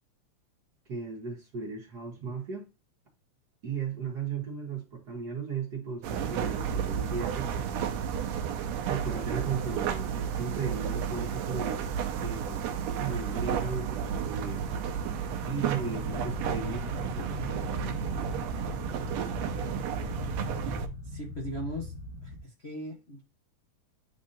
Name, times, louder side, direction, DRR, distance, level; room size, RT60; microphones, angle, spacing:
voice 1, 0.9-2.7 3.6-7.9 8.9-12.7 13.0-14.7 15.5-18.1, right 5 dB, 50° right, 1.3 m, -36 dB
sound 1, 6.0-20.9, right 8 dB, 75° right, 1.8 m, -32 dB
sound 2, 11.9-22.4, left 3 dB, 50° left, 3.4 m, -40 dB
voice 2, 21.0-21.9 22.2-23.2, equal, 75° left, 0.5 m, -39 dB
10.0 x 3.7 x 2.7 m
omnidirectional pair, 3.4 m